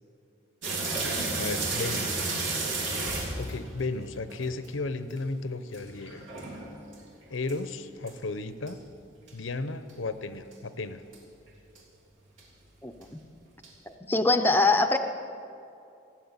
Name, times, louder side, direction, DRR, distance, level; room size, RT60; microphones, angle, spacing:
sound 1, 0.6-4.7 5.1-5.2 5.7-7.0 7.5-7.6 8.1-8.2 8.7-8.8 9.3-9.4 9.9-10.0 10.5-10.6 11.1-11.2 11.7-11.8 12.4-12.5 13.0-13.1 13.6-13.7, right 3 dB, 80° right, 3.4 m, -31 dB
voice 1, 1.4-2.2 3.4-6.2 7.3-8.8 9.3-11.0, left 3 dB, 80° left, 11 dB, 0.8 m, -34 dB
voice 2, 13.9-15.0, left 2 dB, 10° left, 6 dB, 0.6 m, -23 dB
15.0 x 7.6 x 9.6 m, 2.6 s
head